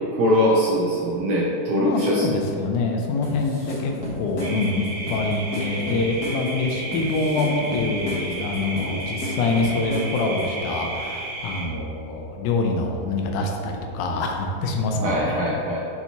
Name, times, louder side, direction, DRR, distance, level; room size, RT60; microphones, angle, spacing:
voice 1, 0.1-2.3 15.0-15.8, equal, 75° right, -4 dB, 1.5 m, -22 dB
voice 2, 1.7-15.4, left 3 dB, 80° left, 2 dB, 2.1 m, -25 dB
sound 1, 3.2-10.6, left 1 dB, 50° left, 1.0 m, -33 dB
sound 2, 4.4-11.6, right 2 dB, 60° right, 1.7 m, -33 dB
6.9 x 5.7 x 2.9 m, 2.7 s
omnidirectional pair, 3.6 m